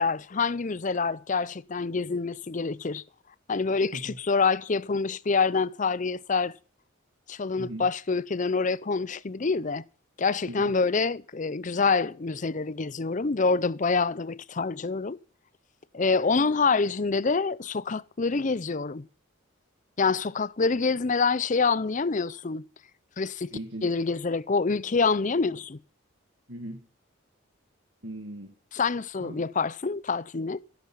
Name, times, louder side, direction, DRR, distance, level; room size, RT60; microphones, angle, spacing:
voice 1, 0.0-3.0 3.5-6.6 7.3-9.8 10.2-15.2 15.9-19.0 20.0-22.6 23.2-23.5 23.8-25.8 28.7-30.6, left 4 dB, 35° left, 0.5 m, -26 dB
voice 2, 23.5-23.9 26.5-26.9 28.0-28.5 29.2-29.5, right 1 dB, 60° right, 2.1 m, -38 dB
16.0 x 9.4 x 5.5 m
head